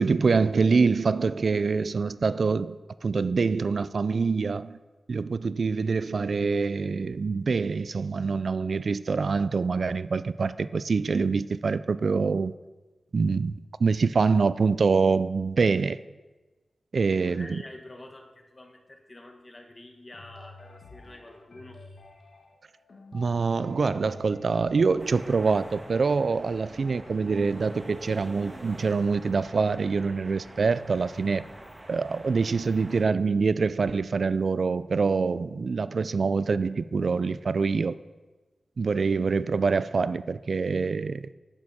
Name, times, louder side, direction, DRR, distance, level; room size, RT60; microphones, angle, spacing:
voice 1, 0.0-4.8 5.1-12.5 13.1-13.5 13.8-16.0 16.9-17.6 23.1-31.4 31.9-38.0 38.8-41.2, right 4 dB, 65° right, 0.3 m, -25 dB
voice 2, 17.1-21.8, left 1 dB, 30° left, 1.4 m, -47 dB
sound 1, 20.1-28.0, left 2 dB, 70° left, 1.8 m, -50 dB
sound 2, 25.0-33.0, right 1 dB, 25° right, 2.0 m, -45 dB
11.0 x 8.7 x 4.2 m
wide cardioid pair, 75°, 0 cm